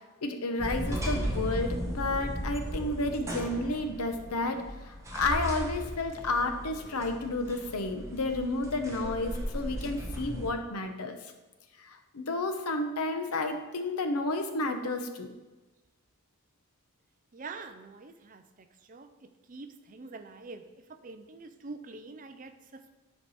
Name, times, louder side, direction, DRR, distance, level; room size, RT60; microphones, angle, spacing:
voice 1, 0.2-11.2 11.8-15.3, left 2 dB, 85° left, 6 dB, 0.9 m, -31 dB
sound 1, 0.6-10.5, equal, 15° right, 1.0 m, -36 dB
voice 2, 17.3-23.0, right 3 dB, 35° right, 8 dB, 0.5 m, -46 dB
10.5 x 4.7 x 4.2 m, 1.1 s
head